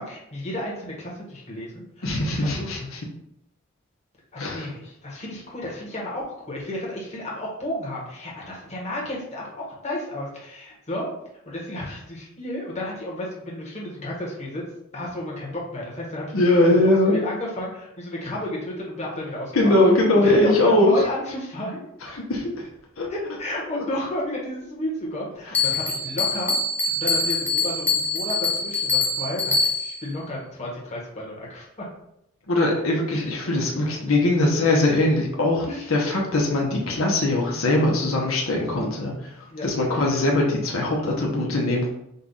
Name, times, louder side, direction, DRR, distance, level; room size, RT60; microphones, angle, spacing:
voice 1, 0.0-2.9 4.3-11.0 11.4-14.6 14.9-16.3 16.6-19.7 20.2-21.9 23.1-26.5 26.8-31.9 33.1-33.3 35.7-35.9 39.5-39.7, left 1 dB, 35° left, -4 dB, 1.3 m, -32 dB
voice 2, 2.0-3.0 4.4-4.7 16.3-17.2 19.5-20.9 22.1-22.7 23.0-23.1 32.5-39.3 39.6-41.9, left 2 dB, 85° left, -1 dB, 1.0 m, -21 dB
Bell, 25.5-30.1, left 3 dB, 5° left, 0.5 m, -24 dB
5.3 x 2.4 x 4.0 m, 0.78 s
head